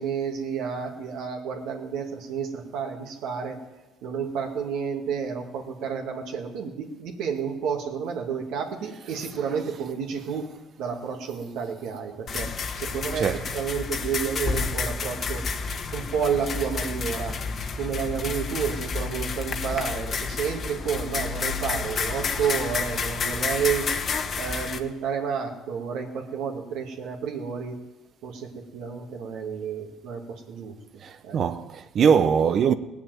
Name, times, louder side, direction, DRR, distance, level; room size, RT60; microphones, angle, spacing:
voice 1, 0.0-3.6 4.0-10.5 10.8-12.5 12.7-15.5 15.9-17.4 17.7-24.0 24.4-27.8 28.2-30.8 31.2-31.4, right 6 dB, 75° right, 1.9 m, -30 dB
sound 1, 12.3-24.8, left 5 dB, 45° left, 1.4 m, -30 dB
voice 2, 31.0-32.7, right 7 dB, 55° right, 0.7 m, -22 dB
17.5 x 7.1 x 9.2 m
supercardioid pair, 85°, 0 cm